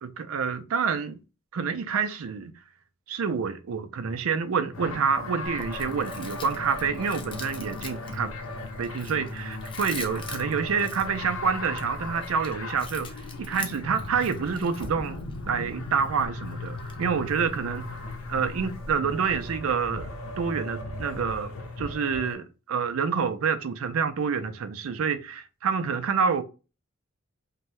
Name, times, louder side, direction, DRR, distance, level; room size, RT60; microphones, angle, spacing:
voice 1, 0.0-1.2 1.5-2.5 3.1-8.3 8.8-15.2 15.5-20.1 20.4-21.5 21.8-26.4, right 6 dB, 90° right, 0.4 m, -28 dB
sound 1, 4.7-22.3, left 2 dB, 85° left, 0.6 m, -37 dB
Chewing mastication, 5.4-19.5, left 3 dB, 25° left, 0.5 m, -44 dB
2.7 x 2.2 x 3.1 m
head